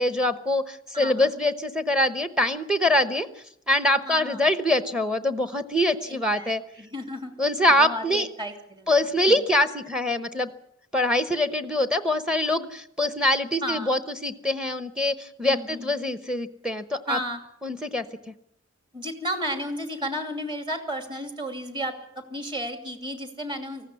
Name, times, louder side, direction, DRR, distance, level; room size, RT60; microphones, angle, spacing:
voice 1, 0.0-3.3 3.7-6.6 7.4-8.3 8.9-10.5 10.9-17.2 17.6-18.0, left 1 dB, 5° right, 11 dB, 0.9 m, -24 dB
voice 2, 0.9-1.3 4.0-4.5 6.1-7.3 7.8-8.9 9.3-9.4 13.6-13.9 15.4-15.9 17.1-17.4 18.9-23.9, equal, 25° right, 7 dB, 2.6 m, -33 dB
19.0 x 15.0 x 9.6 m, 0.77 s
head